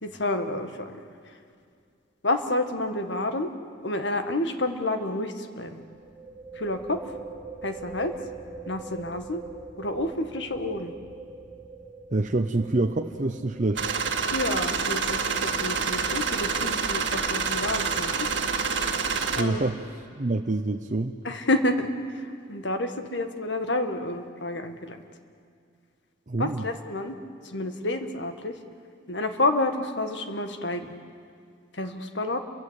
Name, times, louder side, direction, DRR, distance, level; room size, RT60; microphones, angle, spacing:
voice 1, 0.0-1.0 2.2-3.5 3.8-5.8 6.5-7.0 7.6-8.1 8.7-9.4 9.8-10.9 14.3-18.1 19.3-19.6 21.2-21.9 22.1-25.0 26.4-27.1 27.4-28.5 29.1-30.9 31.7-32.4, left 2 dB, 65° left, 7 dB, 1.7 m, -29 dB
sound 1, 2.6-2.9 3.2-3.3 5.8-17.1, right 3 dB, 20° right, 4.9 m, -44 dB
voice 2, 12.1-13.9 19.4-21.2 26.3-26.7, right 2 dB, 40° right, 4 dB, 0.8 m, -27 dB
sound 2, 13.7-19.4, right 5 dB, 70° right, 1.9 m, -27 dB
29.0 x 23.0 x 8.2 m, 2.3 s
head